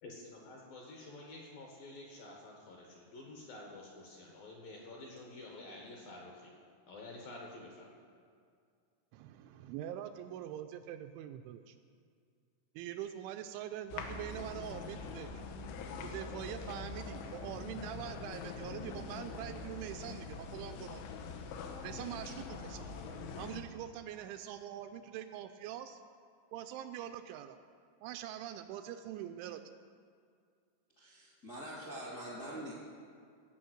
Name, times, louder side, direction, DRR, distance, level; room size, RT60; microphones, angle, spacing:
voice 1, 0.0-6.5 6.9-7.9, left 2 dB, 65° left, -1 dB, 2.5 m, -50 dB
voice 2, 9.1-11.8 12.8-15.3 16.1-21.0 21.8-22.9 23.4-26.0 26.5-27.6 28.0-29.6, right 11 dB, 85° right, 8 dB, 2.8 m, -44 dB
sound 1, 13.9-23.6, left 4 dB, 85° left, 3.4 m, -44 dB
voice 3, 31.0-32.7, right 1 dB, 40° left, -6 dB, 1.2 m, -44 dB
17.0 x 5.7 x 7.8 m, 2.2 s
omnidirectional pair, 5.6 m